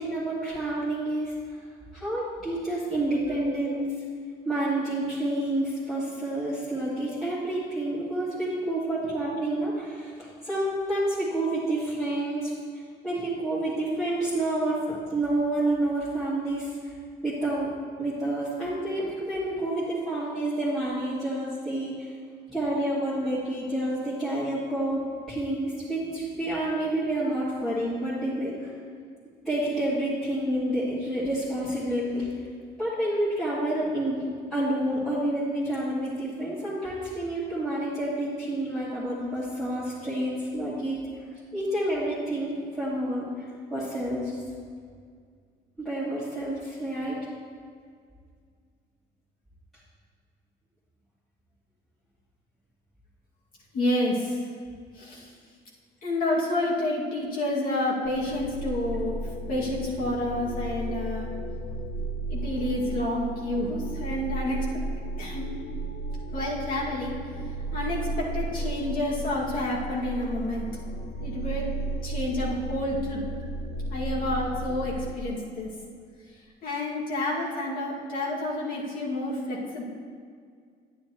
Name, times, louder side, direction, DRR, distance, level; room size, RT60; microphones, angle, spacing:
voice 1, 0.0-1.3 1.9-3.9 4.4-12.5 13.0-16.8 17.2-17.7 18.0-22.1 22.5-25.0 25.3-28.7 29.5-32.3 32.8-41.0 41.5-43.2 43.7-44.3 45.8-47.2, right 1 dB, ahead, -12 dB, 2.2 m, -29 dB
voice 2, 3.1-3.8 53.7-54.4 55.0-55.3 56.0-59.2 59.5-61.3 62.3-64.7 65.2-65.5 66.3-67.2 67.7-70.7 71.2-71.7 72.0-73.2 73.9-75.7 76.6-79.8, left 1 dB, 55° left, -5 dB, 2.2 m, -29 dB
sound 1, 58.1-75.2, right 2 dB, 40° left, 0.7 m, -34 dB
10.0 x 9.6 x 3.0 m, 2.1 s
cardioid pair, 110°, 17 cm